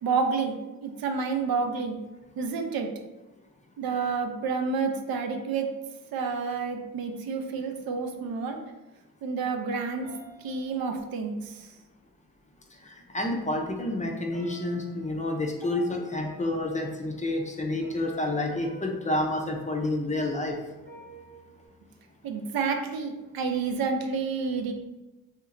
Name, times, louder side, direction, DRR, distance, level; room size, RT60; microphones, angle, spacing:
voice 1, 0.0-0.5 0.8-2.0 2.4-2.9 3.8-5.7 6.1-8.6 9.2-10.1 10.4-11.7 22.2-24.7, right 5 dB, 85° right, 5 dB, 0.5 m, -29 dB
sound 1, 10.0-11.5 12.7-12.8 13.2-13.8 14.3-20.2 20.8-21.7, equal, 25° right, 0.9 m, -50 dB
voice 2, 12.8-20.6, left 1 dB, 20° left, 1 dB, 0.4 m, -29 dB
3.2 x 2.9 x 2.4 m, 1.1 s
cardioid pair, 95°, 35 cm